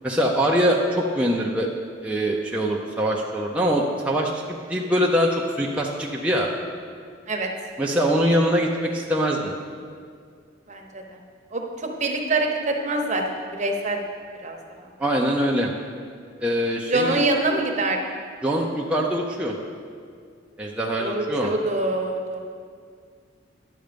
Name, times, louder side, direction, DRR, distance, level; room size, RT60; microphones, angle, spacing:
voice 1, 0.0-1.7 2.0-6.5 7.8-9.5 15.0-15.7 16.4-17.2 18.4-19.6 20.6-21.5, equal, 5° right, -3 dB, 0.6 m, -23 dB
voice 2, 10.7-11.0 11.5-14.0 14.4-14.6 16.9-18.0 21.0-22.4, right 2 dB, 40° right, 2 dB, 1.0 m, -25 dB
10.5 x 7.7 x 5.2 m, 2.1 s
head